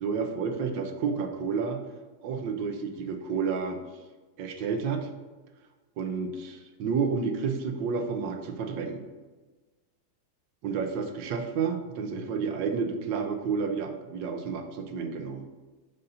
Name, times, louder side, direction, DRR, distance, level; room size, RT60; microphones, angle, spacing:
voice 1, 0.0-1.8 2.2-3.8 4.4-5.1 6.0-9.0 10.6-15.4, right 5 dB, 90° right, 6 dB, 1.4 m, -30 dB
5.5 x 5.2 x 4.0 m, 1.3 s
omnidirectional pair, 2.0 m